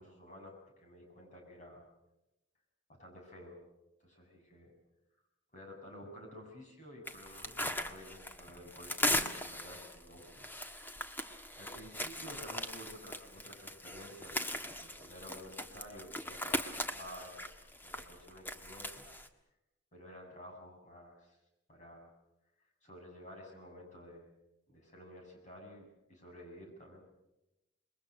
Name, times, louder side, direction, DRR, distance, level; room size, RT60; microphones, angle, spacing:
voice 1, 0.0-1.8 3.0-3.6 4.0-4.7 5.5-10.5 11.6-17.5 17.8-19.1 19.9-21.4 21.7-22.1 22.8-24.3 24.7-27.0, equal, 40° left, 1 dB, 7.3 m, -52 dB
sound 1, 7.1-19.3, left 1 dB, 10° left, 1.4 m, -39 dB
27.5 x 22.0 x 6.4 m, 0.93 s
head